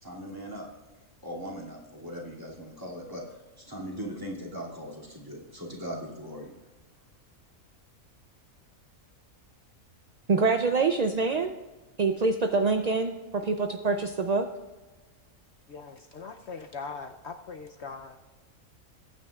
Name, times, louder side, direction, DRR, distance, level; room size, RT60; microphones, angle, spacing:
voice 1, 0.0-0.7 1.2-3.2 3.6-6.5, equal, 15° right, -4 dB, 2.5 m, -39 dB
voice 2, 10.3-11.5 12.0-14.5, right 4 dB, 60° right, 6 dB, 0.4 m, -25 dB
voice 3, 15.7-18.2, left 5 dB, 60° left, 5 dB, 0.9 m, -41 dB
21.0 x 9.3 x 2.4 m, 1.2 s
omnidirectional pair, 1.4 m